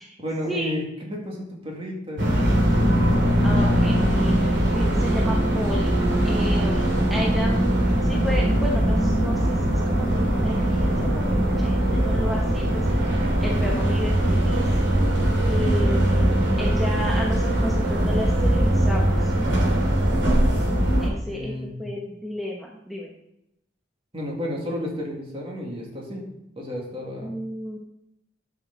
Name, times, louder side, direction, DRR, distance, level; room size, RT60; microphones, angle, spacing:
voice 1, 0.0-2.7 21.3-22.0 24.1-26.2 26.6-27.3, left 1 dB, 30° right, -1 dB, 2.3 m, -32 dB
sound 1, 2.2-21.1, right 1 dB, 70° right, 2.6 m, -21 dB
voice 2, 3.4-5.9 6.2-7.6 8.0-14.6 15.5-19.3 21.0-23.1 27.2-27.8, equal, ahead, -3 dB, 1.0 m, -33 dB
11.5 x 6.2 x 4.0 m, 0.85 s
head